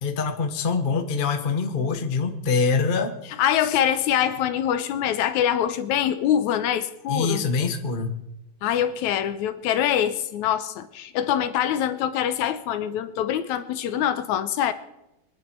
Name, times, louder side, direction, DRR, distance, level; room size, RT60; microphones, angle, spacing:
voice 1, 0.0-3.1 3.6-3.8 7.1-8.2, left 5 dB, 50° left, 5 dB, 0.5 m, -24 dB
voice 2, 3.4-7.5 8.6-14.7, left 10 dB, 75° left, 11 dB, 2.1 m, -24 dB
24.0 x 10.5 x 4.6 m, 0.90 s
omnidirectional pair, 3.5 m